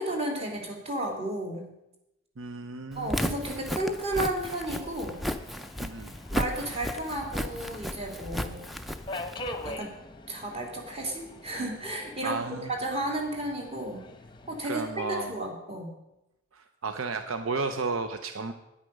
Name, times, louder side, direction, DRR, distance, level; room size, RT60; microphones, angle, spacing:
voice 1, 0.0-1.7 2.9-5.2 6.3-8.7 9.6-9.9 10.3-14.0 14.5-15.9, right 1 dB, 30° right, 1 dB, 2.4 m, -33 dB
voice 2, 2.4-3.1 5.8-6.1 12.2-12.7 14.6-15.4 16.5-18.5, right 4 dB, 80° right, 8 dB, 0.7 m, -33 dB
Walk footsteps, 2.9-9.7, equal, ahead, 0.5 m, -34 dB
Subway metro underground, 4.8-14.7, left 1 dB, 25° left, 0.8 m, -44 dB
9.8 x 9.5 x 6.5 m, 0.92 s
head